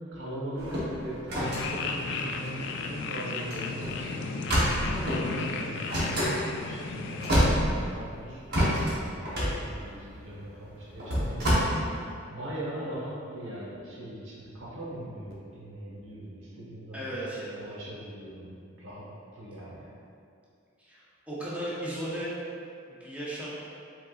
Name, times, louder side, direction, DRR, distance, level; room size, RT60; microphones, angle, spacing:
voice 1, 0.0-5.8 6.0-8.9 9.4-17.1 17.6-19.0 19.3-19.9, right 1 dB, 70° right, -6 dB, 1.1 m, -41 dB
sound 1, 0.6-3.0 3.4-3.5 3.8-4.0 4.4-5.3 5.9-6.3 6.9-7.0 7.2-8.1 8.5-11.5, equal, 55° right, 1.1 m, -27 dB
sound 2, 1.4-7.5, left 4 dB, 60° left, 0.3 m, -34 dB
voice 2, 16.9-17.6 20.8-21.0 21.3-22.3 23.0-23.6, right 1 dB, 5° right, -8 dB, 0.6 m, -35 dB
5.1 x 3.9 x 2.4 m, 2.4 s
head